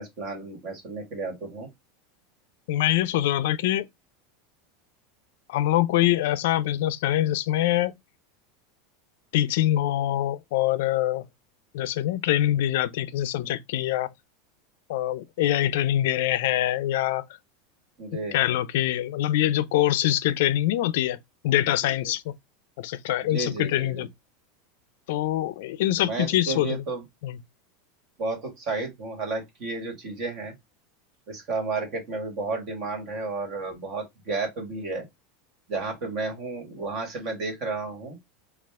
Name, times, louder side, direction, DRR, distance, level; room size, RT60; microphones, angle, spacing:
voice 1, 0.0-1.7 18.0-18.6 21.6-22.1 23.2-24.1 26.0-27.0 28.2-30.5 31.3-35.1 35.7-38.2, right 3 dB, 50° right, 1.8 m, -32 dB
voice 2, 2.7-3.8 5.5-7.9 9.3-11.2 11.7-14.1 14.9-17.2 18.3-21.2 21.4-22.2 22.8-24.1 25.1-26.8 27.2-27.4, left 13 dB, 75° left, 0.4 m, -24 dB
4.1 x 2.3 x 3.5 m
supercardioid pair, 140°, 0 cm